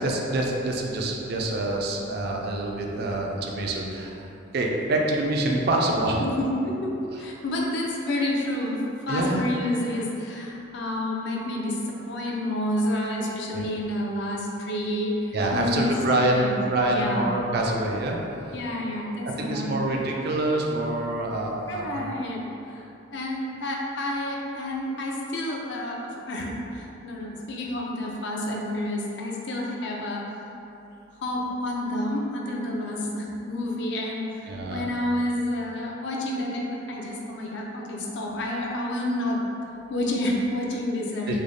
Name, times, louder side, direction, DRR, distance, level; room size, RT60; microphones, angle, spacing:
voice 1, 0.0-4.3 4.5-6.3 9.1-9.4 13.5-13.6 15.3-18.2 19.4-22.1 34.5-34.8 41.3-41.4, right 2 dB, 50° right, 0 dB, 0.4 m, -26 dB
voice 2, 6.2-6.5 6.8-16.6 16.8-17.3 18.5-20.1 21.7-22.8 23.1-30.2 31.2-39.4 39.9-41.4, left 1 dB, 60° left, -2 dB, 0.5 m, -29 dB
3.2 x 2.1 x 3.8 m, 2.9 s
head